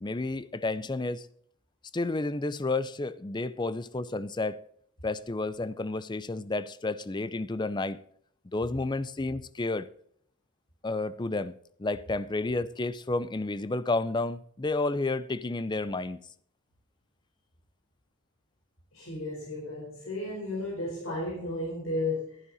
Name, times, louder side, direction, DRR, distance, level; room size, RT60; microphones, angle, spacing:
voice 1, 0.0-1.3 1.9-4.6 5.0-8.0 8.5-9.9 10.8-11.5 11.8-16.2, left 2 dB, 20° left, 0.5 m, -31 dB
voice 2, 18.9-22.4, left 2 dB, 70° left, 4.5 m, -34 dB
12.5 x 11.0 x 4.1 m
head